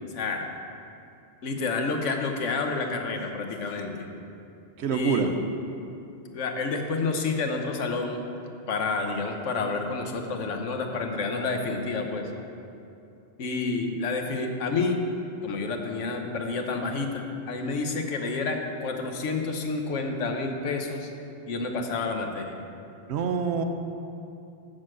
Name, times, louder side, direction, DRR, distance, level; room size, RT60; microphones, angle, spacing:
voice 1, 0.1-0.5 1.4-4.1 4.9-5.4 6.3-8.2 8.7-12.3 13.4-15.0 15.4-21.1 21.5-22.5, left 3 dB, 90° left, 4 dB, 1.2 m, -29 dB
voice 2, 4.8-5.3 23.1-23.6, right 6 dB, 70° right, 6 dB, 0.9 m, -26 dB
6.4 x 6.3 x 7.5 m, 2.7 s
omnidirectional pair, 1.2 m